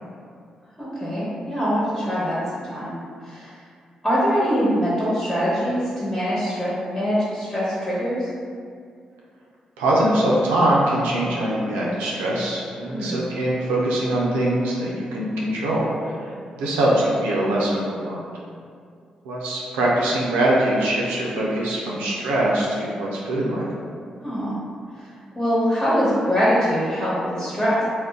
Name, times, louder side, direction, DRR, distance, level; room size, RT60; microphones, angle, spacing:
voice 1, 0.8-2.9 3.2-3.5 4.0-8.3 12.9-13.2 24.2-24.5 25.0-25.1 25.3-27.8, equal, 20° left, -9 dB, 1.1 m, -23 dB
voice 2, 9.8-18.2 19.2-23.7, right 1 dB, 85° right, -4 dB, 0.4 m, -22 dB
2.5 x 2.1 x 3.5 m, 2.2 s
hypercardioid pair, 40°, 3 cm